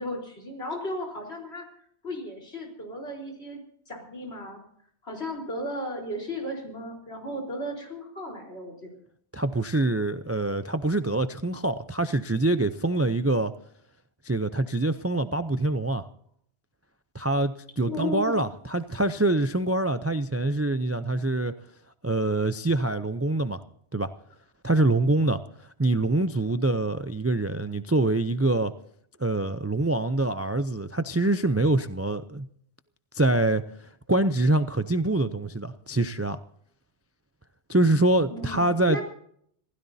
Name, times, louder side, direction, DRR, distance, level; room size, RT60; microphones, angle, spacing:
voice 1, 0.0-1.7 2.0-3.6 3.9-4.6 5.0-9.0 17.9-18.4 38.3-39.0, left 1 dB, 65° left, 0 dB, 4.5 m, -35 dB
voice 2, 9.3-13.5 14.2-16.1 17.1-21.5 22.0-23.6 23.9-24.1 24.6-25.4 25.8-28.7 29.2-32.5 33.1-33.6 34.1-36.4 37.7-39.0, right 2 dB, 20° right, 11 dB, 0.3 m, -25 dB
26.5 x 16.5 x 2.8 m, 0.67 s
omnidirectional pair, 1.2 m